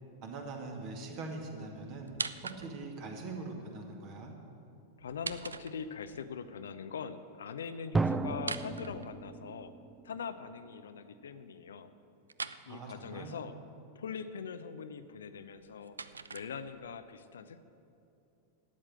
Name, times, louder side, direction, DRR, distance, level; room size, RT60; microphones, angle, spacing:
voice 1, 0.2-2.1 2.4-4.3 12.7-13.3, right 3 dB, 40° right, 2 dB, 2.1 m, -42 dB
sound 1, 2.0-3.0 5.0-6.2 8.3-9.7 12.3-12.6 15.4-17.0, right 4 dB, 75° right, 0.4 m, -42 dB
voice 2, 5.0-9.7 10.0-11.9 12.7-13.5 14.0-16.0 16.3-17.6, left 6 dB, 65° left, 11 dB, 0.6 m, -42 dB
Drum, 7.9-10.7, right 3 dB, 10° right, 0.4 m, -34 dB
12.5 x 8.8 x 7.6 m, 2.6 s
figure-of-eight pair, 90°, 0 cm